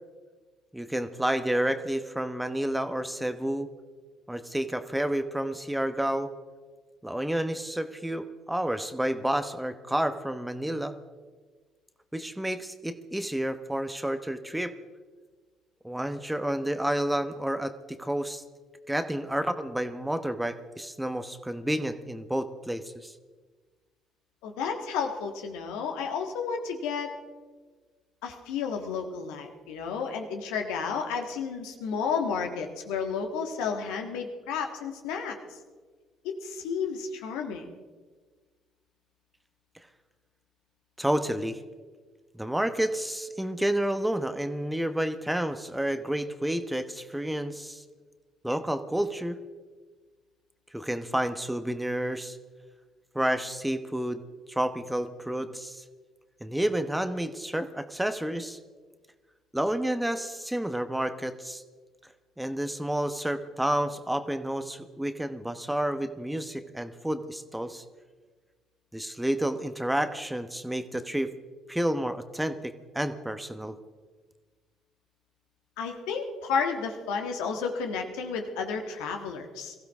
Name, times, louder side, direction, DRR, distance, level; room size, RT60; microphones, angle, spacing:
voice 1, 0.7-3.7 4.3-6.3 7.0-11.0 12.1-14.7 15.8-18.4 18.9-23.1 41.0-41.6 42.3-47.8 48.4-49.4 50.7-52.4 53.1-54.2 54.5-55.8 56.4-58.6 59.5-61.6 62.4-67.8 68.9-71.3 71.7-73.8, right 1 dB, 5° right, 10 dB, 1.1 m, -30 dB
voice 2, 24.4-27.1 28.2-35.4 36.2-37.6 75.8-79.7, left 5 dB, 75° left, 4 dB, 1.6 m, -32 dB
22.5 x 15.5 x 3.6 m, 1.4 s
hypercardioid pair, 50°, 0 cm